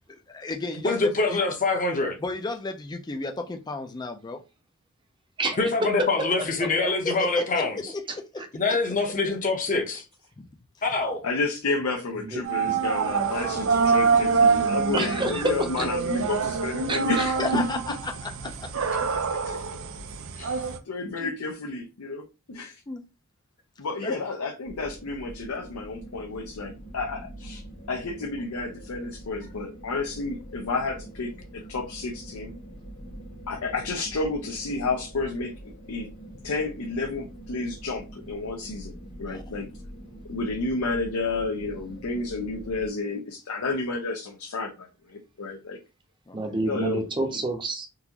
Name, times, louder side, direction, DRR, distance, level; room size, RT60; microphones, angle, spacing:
voice 1, 0.1-1.4 2.2-4.4 7.0-8.4 10.4-10.5 17.4-18.7 19.1-19.2 20.4-20.5 21.2-21.3 22.9-23.0 24.0-24.2 39.3-39.4 46.3-46.4, left 3 dB, 20° left, 0.4 m, -33 dB
voice 2, 0.7-2.2 5.6-7.9 8.5-10.0 10.8-11.2 20.4-20.6, left 3 dB, 35° left, 0.8 m, -25 dB
voice 3, 8.1-8.5 12.1-12.7 14.9-15.9 16.9-17.3 46.3-47.9, right 2 dB, 20° right, 0.7 m, -29 dB
voice 4, 11.2-17.6 19.5-19.7 20.9-22.8 23.8-27.6 27.9-31.3 31.7-32.5 33.5-35.5 35.9-36.1 36.4-39.7 40.3-45.8 46.6-47.0, left 3 dB, 75° left, 0.6 m, -31 dB
sound 1, 12.4-20.8, right 5 dB, 65° right, 0.5 m, -25 dB
sound 2, 24.6-42.9, right 1 dB, 90° left, 1.4 m, -43 dB
3.9 x 2.5 x 2.9 m
head